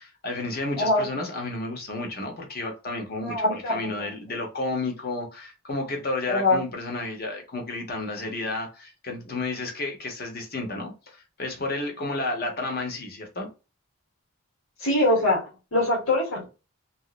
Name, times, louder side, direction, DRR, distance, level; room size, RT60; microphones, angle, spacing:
voice 1, 0.0-13.5, left 2 dB, 45° left, 0.9 m, -32 dB
voice 2, 3.2-4.1 6.3-6.6 14.8-16.5, left 2 dB, 70° left, 1.5 m, -23 dB
3.0 x 2.7 x 2.4 m
head